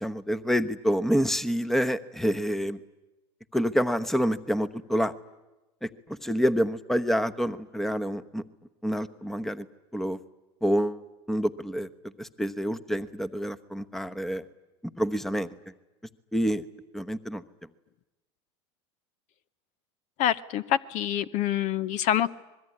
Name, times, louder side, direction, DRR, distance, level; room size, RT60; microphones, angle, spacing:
voice 1, 0.0-2.8 3.5-5.1 5.8-5.9 6.2-8.4 8.8-9.6 9.9-10.2 10.6-11.0 11.3-11.9 12.2-14.4 15.0-15.5 16.3-16.6 16.9-17.4, equal, ahead, 11 dB, 1.0 m, -27 dB
voice 2, 20.2-22.3, left 11 dB, 50° left, 16 dB, 0.8 m, -26 dB
25.0 x 21.5 x 9.8 m, 1.0 s
hypercardioid pair, 100°, 15 cm